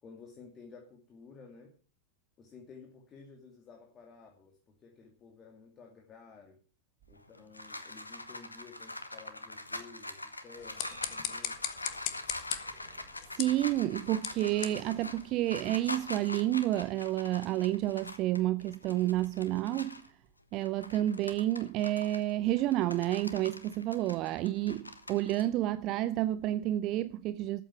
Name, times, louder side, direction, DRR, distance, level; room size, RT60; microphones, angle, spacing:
voice 1, 0.0-1.7 2.4-6.6 7.1-11.5, left 5 dB, 25° left, 2.5 m, -53 dB
sound 1, 7.1-20.1 20.5-25.4, left 2 dB, 85° left, 1.4 m, -44 dB
sound 2, 10.5-15.8, left 12 dB, 45° left, 1.5 m, -40 dB
sound 3, 10.8-14.9, right 4 dB, 65° right, 2.4 m, -58 dB
voice 2, 13.3-20.0 20.5-27.6, right 14 dB, 40° right, 0.6 m, -30 dB
13.5 x 8.3 x 7.1 m
figure-of-eight pair, 90°, 0 cm